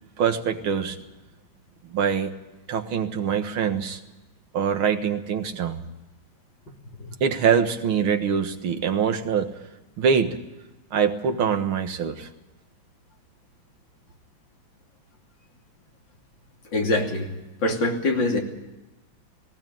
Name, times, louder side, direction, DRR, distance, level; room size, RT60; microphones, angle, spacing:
voice 1, 0.2-1.0 1.8-2.3 2.7-4.0 4.5-5.8 7.2-9.6 10.0-10.4 10.9-12.3, right 7 dB, 85° right, 7 dB, 2.4 m, -24 dB
voice 2, 16.7-17.3 17.6-18.4, left 2 dB, 65° left, 2 dB, 3.5 m, -23 dB
19.0 x 17.5 x 9.2 m, 1.0 s
omnidirectional pair, 2.2 m